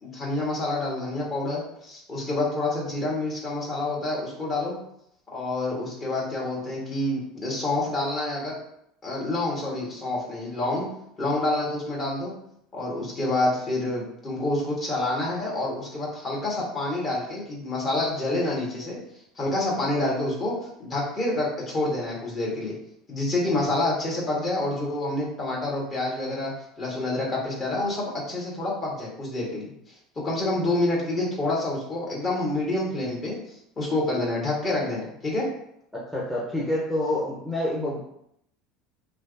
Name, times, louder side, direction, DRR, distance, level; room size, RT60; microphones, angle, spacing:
voice 1, 0.0-4.7 5.3-8.5 9.0-10.9 11.2-12.3 12.7-19.0 19.3-20.5 20.8-22.8 23.1-29.7 30.1-35.5, left 2 dB, 35° left, -4 dB, 1.4 m, -28 dB
voice 2, 35.9-38.0, left 1 dB, 5° left, -7 dB, 0.8 m, -27 dB
3.2 x 2.5 x 2.6 m, 0.75 s
hypercardioid pair, 70°, 0 cm